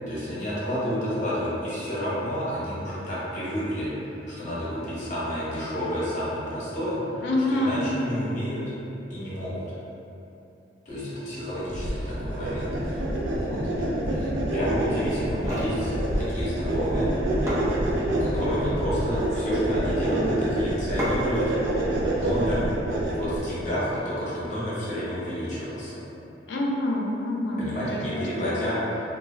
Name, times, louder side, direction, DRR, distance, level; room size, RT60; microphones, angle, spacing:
voice 1, 0.1-3.9 4.3-7.2 7.5-8.6 9.1-9.6 10.9-17.5 17.8-21.4 22.0-22.6 23.1-25.9 27.6-29.0, equal, 45° left, -9 dB, 0.8 m, -30 dB
voice 2, 7.2-7.8 26.5-28.6, left 1 dB, 70° left, -2 dB, 0.4 m, -27 dB
sound 1, 11.7-23.4, right 1 dB, 75° right, 0.4 m, -27 dB
sound 2, 15.4-15.8 17.0-17.1 17.5-18.2 18.9-19.4 21.0-21.4, equal, 15° right, 0.5 m, -31 dB
2.3 x 2.0 x 3.6 m, 2.9 s
head